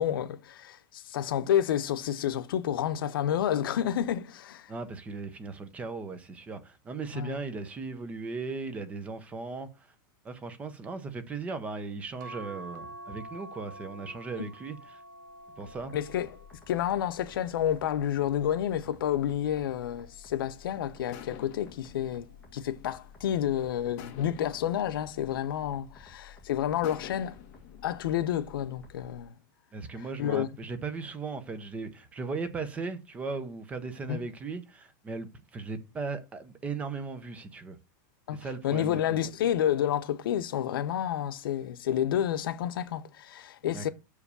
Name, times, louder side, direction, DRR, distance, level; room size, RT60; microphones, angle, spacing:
voice 1, 0.0-4.7 7.1-7.4 14.4-14.5 15.9-16.3 16.7-27.3 27.8-29.3 30.2-30.5 34.1-34.2 38.3-43.9, left 10 dB, 85° left, 0.8 m, -30 dB
voice 2, 4.7-9.9 10.2-15.0 15.6-16.0 29.7-37.8 38.3-39.2 43.7-43.9, right 4 dB, 10° right, 0.6 m, -37 dB
sound 1, 12.2-18.8 19.5-20.9 22.1-22.5 22.9-23.0, right 1 dB, 50° right, 1.0 m, -48 dB
sound 2, 15.6-29.2, left 6 dB, 10° left, 1.6 m, -54 dB
sound 3, 21.1-23.4 24.0-26.1 26.8-29.1, left 9 dB, 35° left, 1.1 m, -49 dB
6.6 x 5.0 x 6.8 m
supercardioid pair, 175°, 11 cm